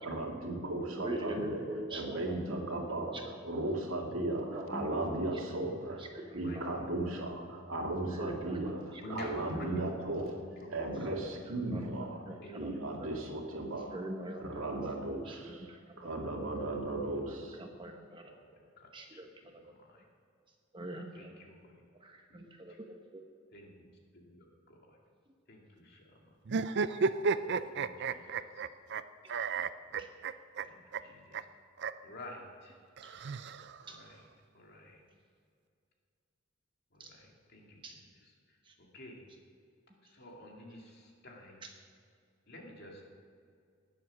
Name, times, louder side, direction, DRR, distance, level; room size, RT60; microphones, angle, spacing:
voice 1, 0.0-1.6 1.9-3.2 3.4-6.0 6.3-8.8 9.1-10.4 10.7-12.2 12.6-14.0 14.4-15.5 16.0-17.6, right 2 dB, 80° right, 0 dB, 2.3 m, -36 dB
voice 2, 0.8-3.7 4.5-7.1 8.0-10.2 11.0-13.1 13.9-16.1 16.4-16.5 17.3-18.3 18.9-19.6 20.7-21.4 21.9-23.2 30.0-30.1 33.0-33.2 33.9-34.0 37.0-37.2 37.8-37.9 38.6-38.8 41.6-41.7, right 1 dB, 25° right, 3 dB, 0.9 m, -44 dB
voice 3, 6.1-7.0 9.0-9.9 10.2-10.9 12.4-13.0 18.2-18.5 18.8-19.2 19.9-20.0 21.1-21.8 22.3-22.4 22.7-22.8 23.5-23.9 24.1-25.0 25.5-26.1 27.4-28.4 29.8-30.0 30.6-31.4 32.0-32.7 33.9-34.1 34.5-35.0 36.9-37.8 38.5-38.6 38.9-39.3 40.0-41.6 42.5-43.0, left 1 dB, 50° left, 0 dB, 2.4 m, -50 dB
sound 1, 26.5-29.0 29.3-30.6 30.9-31.0 31.3-31.4 31.8-31.9 33.0-34.0, right 5 dB, 55° right, 0.5 m, -32 dB
19.5 x 7.7 x 6.3 m, 2.3 s
head